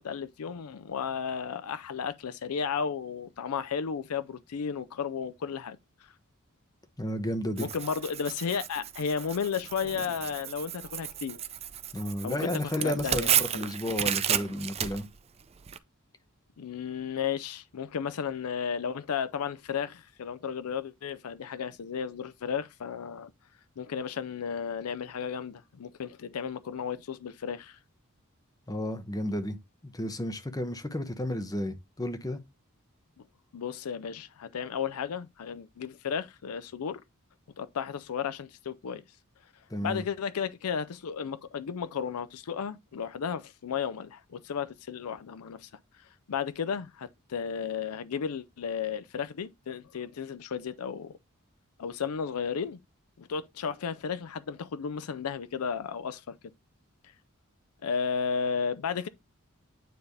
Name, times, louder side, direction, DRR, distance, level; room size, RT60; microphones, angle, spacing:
voice 1, 0.0-5.8 7.6-11.4 12.2-13.6 16.6-23.3 23.8-27.8 33.5-37.0 37.6-39.0 39.8-45.7 46.3-51.2 51.8-52.8 53.2-56.4 57.8-59.1, left 6 dB, 90° left, 0.5 m, -34 dB
voice 2, 7.0-7.7 11.9-15.1 28.7-32.4 39.7-40.0, left 1 dB, 15° left, 0.9 m, -32 dB
Tearing, 7.6-15.8, right 9 dB, 30° right, 0.4 m, -33 dB
9.3 x 3.3 x 4.0 m
head